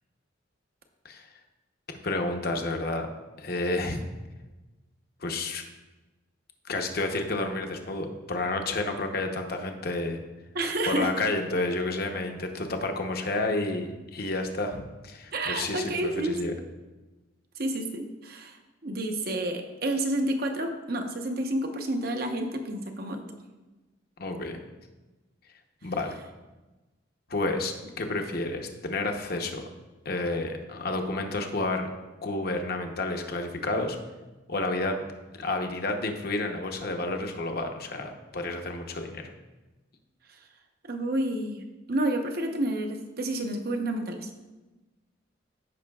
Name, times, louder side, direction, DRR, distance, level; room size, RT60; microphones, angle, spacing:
voice 1, 2.0-3.1 3.4-4.0 5.2-5.6 6.6-10.2 10.9-16.5 24.2-24.6 25.8-26.2 27.3-29.6 30.0-31.9 32.2-34.0 34.5-35.0 35.4-39.3, left 2 dB, 50° left, 4 dB, 0.8 m, -30 dB
voice 2, 10.5-11.1 15.3-16.5 17.6-18.6 18.8-23.2 40.8-41.6 41.9-44.3, right 1 dB, 50° right, 5 dB, 0.9 m, -29 dB
14.5 x 5.7 x 2.3 m, 1.1 s
head